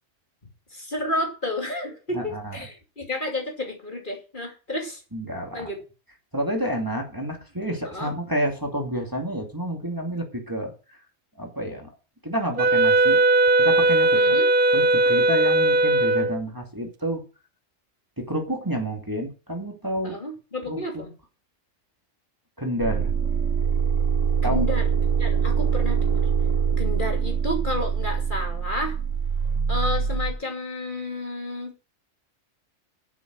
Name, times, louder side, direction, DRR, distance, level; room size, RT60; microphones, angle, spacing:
voice 1, 0.7-5.0 5.5-5.8 7.9-8.1 14.1-14.5 20.0-21.1 24.4-24.9 25.2-26.3 26.8-29.0 29.7-31.9, left 1 dB, 40° left, 2 dB, 2.9 m, -31 dB
voice 2, 2.1-2.6 5.1-5.7 6.3-11.0 11.4-11.9 12.2-13.2 13.6-14.4 14.7-17.2 18.2-20.2 20.7-21.0 22.6-23.1 24.4-24.7, equal, 15° right, 2 dB, 2.5 m, -29 dB
Wind instrument woodwind instrument, 12.6-16.4, right 2 dB, 45° right, 1.1 m, -19 dB
sound 1, 22.8-30.3, right 6 dB, 80° right, 1.6 m, -24 dB
11.0 x 7.5 x 6.3 m, 0.33 s
omnidirectional pair, 1.3 m